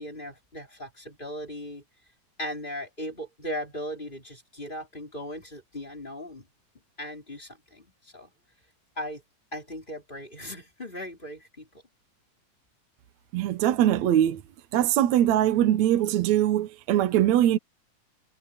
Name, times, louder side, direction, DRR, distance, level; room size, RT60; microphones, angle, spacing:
voice 1, 0.0-1.8 2.4-6.5 7.0-8.3 9.0-9.2 9.5-11.8, equal, 15° left, 4.3 m, -38 dB
voice 2, 13.3-14.4 14.7-17.6, right 12 dB, 70° right, 2.2 m, -22 dB
omnidirectional pair, 3.5 m